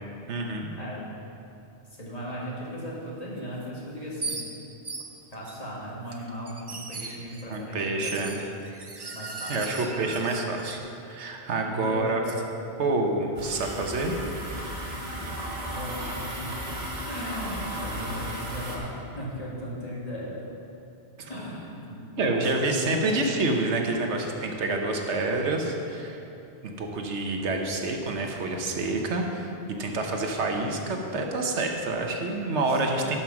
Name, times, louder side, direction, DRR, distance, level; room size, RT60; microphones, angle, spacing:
voice 1, 0.3-0.7 7.5-8.4 9.5-10.8 11.1-12.2 12.8-14.2 21.2-21.3 22.2-26.2 26.8-29.5 29.8-33.2, right 2 dB, 80° right, 2 dB, 1.3 m, -27 dB
voice 2, 1.9-4.4 5.3-8.4 9.1-9.7 11.6-12.4 15.3-16.2 16.4-16.6 17.0-20.4 21.3-23.1 32.5-33.2, equal, 35° left, -5 dB, 2.0 m, -37 dB
sound 1, 3.6-3.7 4.2-4.5 4.8-5.5 6.1-7.5 8.0-10.8, right 3 dB, 30° right, 0.6 m, -37 dB
sound 2, 13.4-18.8, equal, 65° right, 2.0 m, -35 dB
12.5 x 5.6 x 5.9 m, 2.7 s
omnidirectional pair, 1.1 m